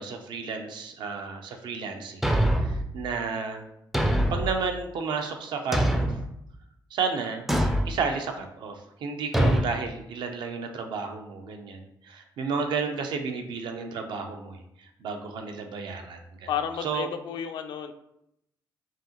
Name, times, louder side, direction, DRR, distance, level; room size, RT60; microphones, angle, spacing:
voice 1, 0.0-2.2 2.6-3.6 4.3-6.2 6.9-7.5 7.9-16.5 16.8-17.1, right 5 dB, 75° right, 4 dB, 0.6 m, -32 dB
Thump thud, 2.2-2.8 3.9-4.5 5.7-6.3 7.5-7.9 9.3-9.7, right 1 dB, 5° right, 0.3 m, -23 dB
voice 2, 16.5-17.9, left 8 dB, 75° left, 7 dB, 0.4 m, -32 dB
5.0 x 2.8 x 2.9 m, 0.81 s
cardioid pair, 135°, 8 cm